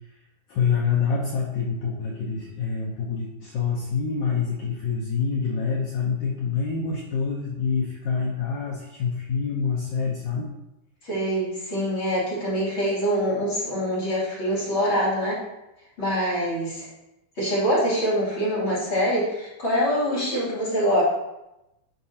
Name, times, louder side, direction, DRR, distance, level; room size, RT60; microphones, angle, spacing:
voice 1, 0.5-10.5, left 5 dB, 80° left, -3 dB, 1.7 m, -26 dB
voice 2, 11.0-15.4 16.0-16.9 17.3-21.0, equal, 30° left, -9 dB, 3.2 m, -24 dB
12.0 x 4.7 x 2.9 m, 0.92 s
omnidirectional pair, 4.7 m